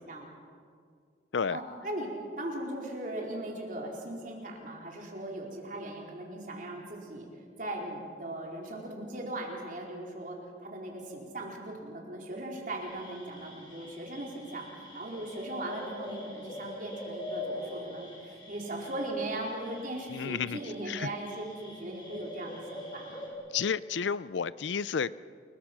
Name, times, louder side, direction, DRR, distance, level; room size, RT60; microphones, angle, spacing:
voice 1, 1.5-2.1 2.4-7.3 7.6-23.3, right 1 dB, 45° right, -1 dB, 4.4 m, -38 dB
sound 1, 12.8-23.3, left 1 dB, 25° left, 5.6 m, -44 dB
voice 2, 20.1-20.6 20.9-21.1 23.5-25.3, left 6 dB, 80° left, 18 dB, 0.5 m, -31 dB
30.0 x 22.0 x 6.2 m, 2.2 s
head